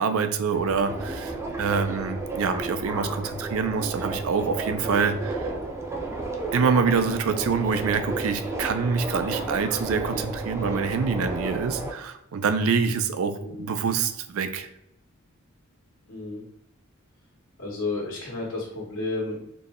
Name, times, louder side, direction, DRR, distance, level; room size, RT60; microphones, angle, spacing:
voice 1, 0.0-5.5 6.5-14.7, right 5 dB, 85° right, 9 dB, 0.4 m, -26 dB
Subway metro underground, 0.5-11.9, right 2 dB, 15° right, 0.4 m, -33 dB
voice 2, 16.1-16.4 17.6-19.4, left 3 dB, 85° left, -5 dB, 1.2 m, -32 dB
4.0 x 2.1 x 3.5 m, 0.79 s
head